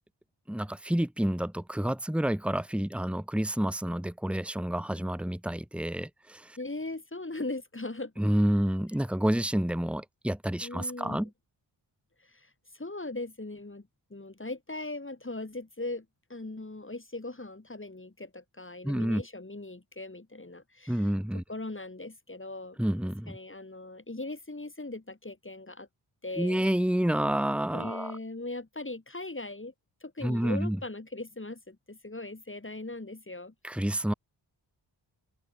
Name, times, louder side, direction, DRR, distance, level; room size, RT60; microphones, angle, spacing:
voice 1, 0.5-6.6 8.2-11.3 18.8-19.2 20.9-21.4 22.8-23.4 26.4-28.1 30.2-30.8 33.6-34.1, right 1 dB, ahead, 2.0 m, -29 dB
voice 2, 6.6-8.1 10.6-11.3 12.2-22.8 23.3-25.9 26.2-26.7 27.7-29.7 30.0-33.5, left 2 dB, 25° left, 7.2 m, -39 dB
open air
cardioid pair, 60°, 45 cm